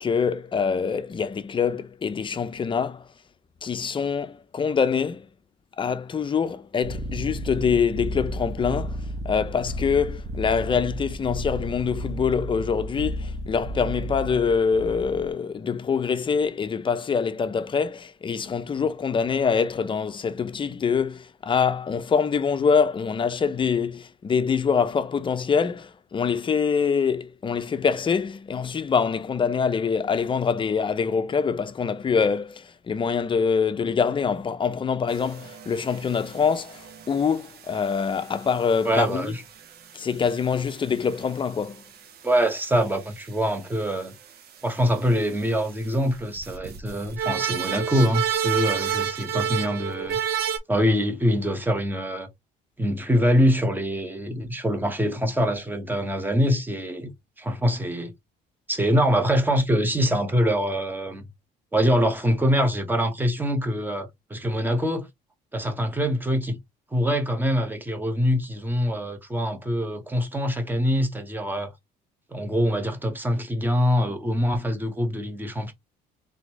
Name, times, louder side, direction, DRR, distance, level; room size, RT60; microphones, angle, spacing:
voice 1, 0.0-3.0 3.6-5.3 5.8-9.0 9.2-39.3 39.9-41.8, left 6 dB, 30° left, 0.7 m, -25 dB
sound 1, 6.8-15.3, equal, 40° right, 1.3 m, -33 dB
sound 2, 35.1-43.3 43.7-44.0 44.2-44.3 44.6-45.0 45.3-50.6, right 8 dB, 65° right, 1.2 m, -31 dB
voice 2, 38.8-39.4 42.2-44.1 44.6-50.2 50.7-52.3 52.8-57.1 57.4-58.1 58.7-61.3 61.7-65.1 65.5-66.6 66.9-71.7 72.3-75.7, equal, 10° right, 1.3 m, -24 dB
3.8 x 3.5 x 3.1 m
cardioid pair, 110°, 17 cm